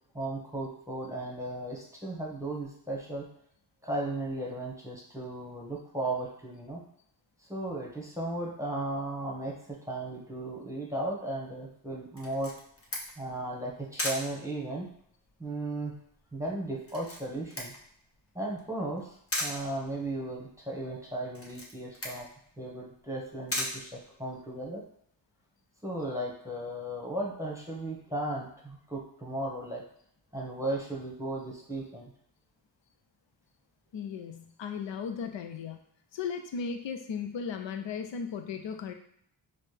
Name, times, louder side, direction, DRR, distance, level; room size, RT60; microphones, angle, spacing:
voice 1, 0.1-3.3 3.8-6.8 7.5-12.5 13.2-14.9 15.4-15.9 16.3-17.7 18.3-19.1 19.4-22.3 22.6-24.8 25.8-29.8 30.3-32.1, right 1 dB, 5° right, -3 dB, 1.1 m, -35 dB
Camera, 12.2-24.6, left 1 dB, 30° left, 1.1 m, -40 dB
voice 2, 33.9-35.8 36.1-38.9, left 6 dB, 70° left, 6 dB, 0.6 m, -36 dB
4.1 x 2.2 x 3.3 m, 0.68 s
cardioid pair, 50°, 46 cm